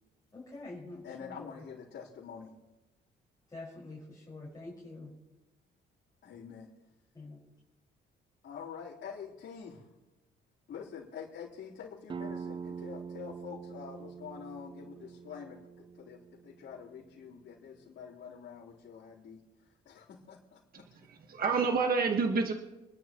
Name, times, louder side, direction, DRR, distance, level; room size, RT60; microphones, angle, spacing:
voice 1, 0.3-1.5 3.5-5.1 7.1-7.4, left 2 dB, 20° left, -4 dB, 5.3 m, -46 dB
voice 2, 1.0-2.6 6.2-6.7 8.4-9.9 10.7-20.9, left 7 dB, 70° left, -9 dB, 3.8 m, -46 dB
sound 1, 12.1-17.5, right 6 dB, 25° right, 0.4 m, -44 dB
voice 3, 20.7-22.5, right 4 dB, 50° right, 3 dB, 1.6 m, -29 dB
26.5 x 12.0 x 3.1 m, 1.0 s
cardioid pair, 90°, 20 cm